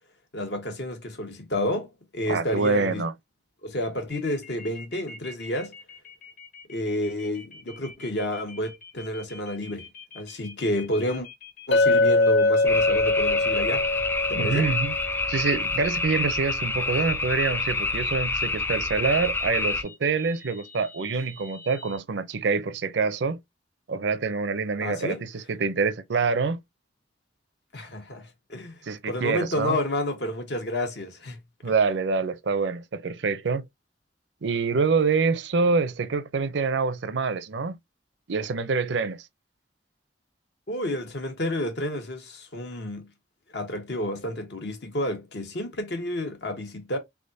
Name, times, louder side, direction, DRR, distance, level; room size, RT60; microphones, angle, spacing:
voice 1, 0.3-3.1 3.6-5.7 6.7-9.9 10.1-11.3 11.7-13.9 14.3-14.7 24.8-25.2 27.7-28.8 29.1-31.4 40.7-43.1 43.5-47.0, left 1 dB, 70° left, 1.2 m, -30 dB
voice 2, 2.3-3.1 14.4-14.9 15.3-23.4 23.9-26.6 28.8-29.8 31.6-33.6 34.4-37.8 38.3-39.2, right 4 dB, 80° right, 0.6 m, -26 dB
sound 1, 4.1-22.0, left 4 dB, 50° left, 1.5 m, -46 dB
Chink clink, 11.7-15.9, left 2 dB, 90° left, 0.4 m, -23 dB
sound 2, 12.7-19.8, left 3 dB, 10° left, 0.4 m, -28 dB
3.6 x 3.5 x 2.7 m
head